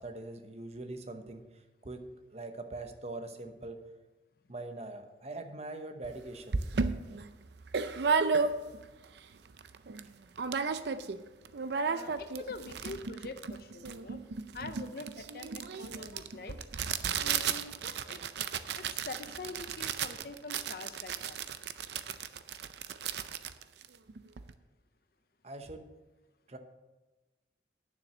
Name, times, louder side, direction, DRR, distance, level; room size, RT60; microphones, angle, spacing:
voice 1, 0.0-2.0 2.3-3.8 4.5-6.6 25.4-25.9 26.5-26.6, right 2 dB, 35° right, 7 dB, 0.9 m, -43 dB
sound 1, 6.0-6.1 6.5-8.9 9.3-9.4 9.6-10.1 10.4-11.2 11.4-24.5, right 5 dB, 70° right, 0.5 m, -34 dB
voice 2, 11.9-14.2 14.5-16.6 17.2-18.2 18.7-21.4, left 3 dB, 55° left, 8 dB, 0.6 m, -45 dB
9.4 x 7.3 x 6.2 m, 1.1 s
head